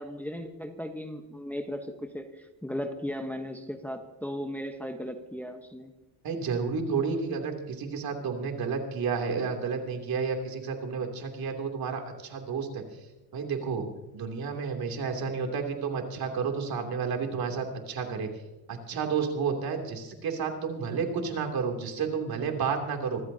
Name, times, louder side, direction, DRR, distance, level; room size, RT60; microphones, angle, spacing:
voice 1, 0.0-5.9, equal, 5° left, 5 dB, 1.1 m, -36 dB
voice 2, 6.2-12.8 13.3-13.9 14.1-18.3 18.7-23.2, right 5 dB, 60° right, 3 dB, 3.0 m, -31 dB
25.0 x 15.0 x 2.8 m, 1.0 s
cardioid pair, 115°, 41 cm